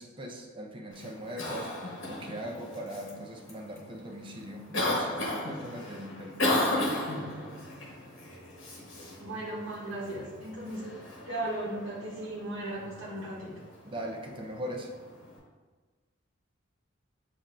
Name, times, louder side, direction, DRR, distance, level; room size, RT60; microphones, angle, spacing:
voice 1, 0.0-6.7 13.8-14.9, equal, 25° right, 1 dB, 0.5 m, -40 dB
Cough, 0.9-15.4, left 1 dB, 70° left, 1.1 m, -36 dB
voice 2, 9.2-10.8 11.2-13.5, right 1 dB, 80° right, -6 dB, 1.0 m, -36 dB
7.3 x 2.6 x 2.5 m, 1.4 s
head